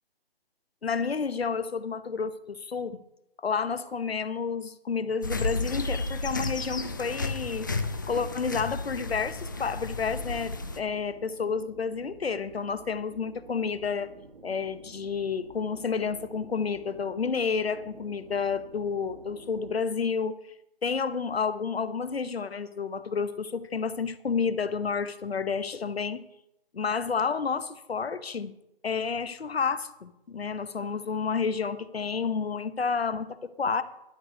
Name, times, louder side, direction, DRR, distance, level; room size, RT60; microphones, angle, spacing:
voice 1, 0.8-3.0 3.4-7.7 8.1-14.1 14.4-20.3 20.8-26.2 26.7-28.5 28.8-33.8, left 5 dB, 80° left, 13 dB, 0.9 m, -30 dB
sound 1, 5.2-10.8, left 3 dB, 20° left, 0.4 m, -32 dB
sound 2, 9.3-19.8, right 3 dB, 75° right, 1.8 m, -51 dB
11.5 x 6.5 x 6.5 m, 0.85 s
figure-of-eight pair, 145°, 30 cm